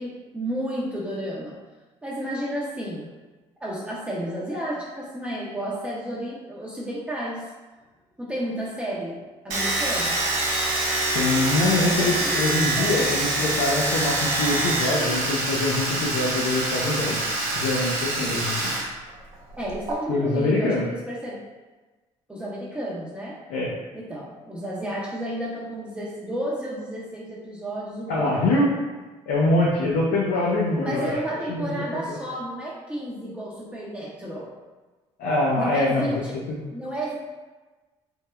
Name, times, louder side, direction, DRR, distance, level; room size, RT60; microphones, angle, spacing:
voice 1, 0.0-1.6 2.0-3.1 3.6-7.4 8.2-10.2 11.7-12.3 12.8-13.0 19.6-21.4 22.3-23.4 23.9-28.6 30.8-34.5 35.6-36.3 36.7-37.2, right 1 dB, 10° right, -7 dB, 0.5 m, -32 dB
Domestic sounds home sounds, 9.5-18.8 19.1-19.9, right 2 dB, 70° right, 0.7 m, -25 dB
voice 2, 11.1-17.2 17.6-18.7 20.1-20.9 23.5-23.7 28.1-28.7 29.3-31.1 31.5-31.6 32.1-32.2 35.2-36.1 36.5-36.6, left 2 dB, 75° left, -5 dB, 0.5 m, -24 dB
3.1 x 2.1 x 2.2 m, 1.2 s
supercardioid pair, 70°, 14 cm